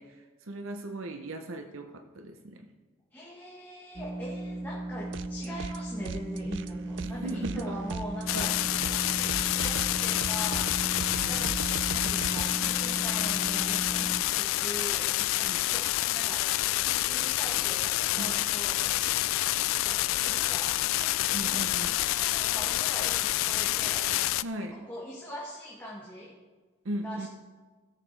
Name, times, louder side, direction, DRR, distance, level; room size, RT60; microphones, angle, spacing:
voice 1, 0.0-2.7 7.0-7.8 8.3-8.5 11.0-11.4 15.4-15.7 18.1-18.4 21.3-22.0 24.4-24.8 26.8-27.3, right 1 dB, 80° right, 6 dB, 0.8 m, -38 dB
voice 2, 3.1-10.9 11.3-11.5 11.9-16.5 17.0-18.8 19.8-24.1 24.6-26.4 27.0-27.3, equal, 10° left, -6 dB, 1.6 m, -42 dB
sound 1, 3.9-14.2, right 1 dB, 25° right, 0.8 m, -37 dB
sound 2, 5.1-5.8 6.0-12.5, right 6 dB, 60° right, 0.3 m, -39 dB
sound 3, 8.3-24.4, left 15 dB, 80° left, 0.3 m, -28 dB
16.5 x 7.3 x 3.4 m, 1.3 s
head